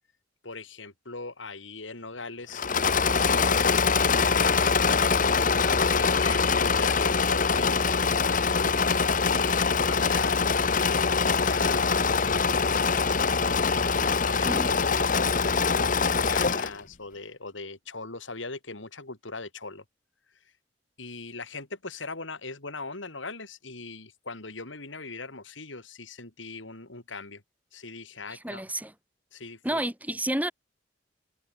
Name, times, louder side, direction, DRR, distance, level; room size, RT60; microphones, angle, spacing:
voice 1, 0.4-2.6 3.3-5.0 5.5-8.7 9.0-19.8 21.0-27.4 27.7-28.6 29.3-29.8, left 3 dB, 85° left, 4.2 m, -40 dB
Engine / Mechanisms, 2.5-16.8, left 5 dB, 45° left, 1.2 m, -24 dB
voice 2, 28.3-28.9 29.6-30.5, right 1 dB, 10° right, 4.6 m, -30 dB
head